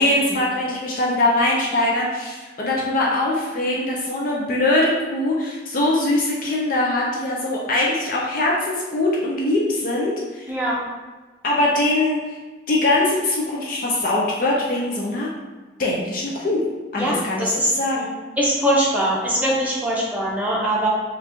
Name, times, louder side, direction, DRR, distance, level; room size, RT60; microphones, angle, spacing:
voice 1, 0.0-10.5 11.4-12.2 12.7-15.3 15.8-16.6 16.9-18.1, left 2 dB, 50° left, -4 dB, 0.5 m, -22 dB
voice 2, 17.0-17.7 18.4-20.9, right 1 dB, 10° right, -5 dB, 0.6 m, -22 dB
3.0 x 2.5 x 3.4 m, 1.3 s
head